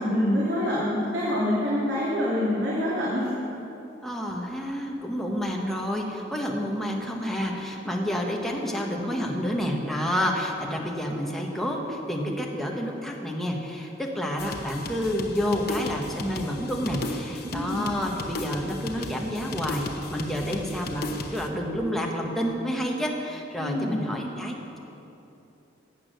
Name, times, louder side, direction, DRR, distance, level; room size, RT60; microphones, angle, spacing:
voice 1, 0.0-3.3 17.4-17.8 23.6-23.9, left 1 dB, 75° right, -7 dB, 2.6 m, -26 dB
voice 2, 4.0-24.8, equal, ahead, -1 dB, 1.4 m, -29 dB
sound 1, 14.4-21.5, left 2 dB, 55° left, 1.0 m, -36 dB
15.5 x 8.7 x 6.7 m, 3.0 s
head